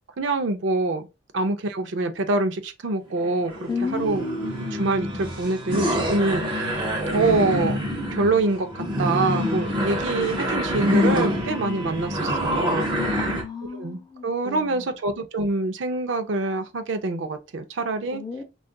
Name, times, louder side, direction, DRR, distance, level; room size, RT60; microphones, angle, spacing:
voice 1, 0.2-1.1 1.3-4.2 4.8-6.8 7.1-7.8 8.1-12.9 13.8-18.2, right 3 dB, 70° right, 0.5 m, -25 dB
sound 1, 3.2-13.4, equal, 25° right, 0.7 m, -26 dB
voice 2, 3.7-4.6 13.2-15.0 18.1-18.4, left 2 dB, 20° left, 0.5 m, -32 dB
3.6 x 2.4 x 2.2 m
head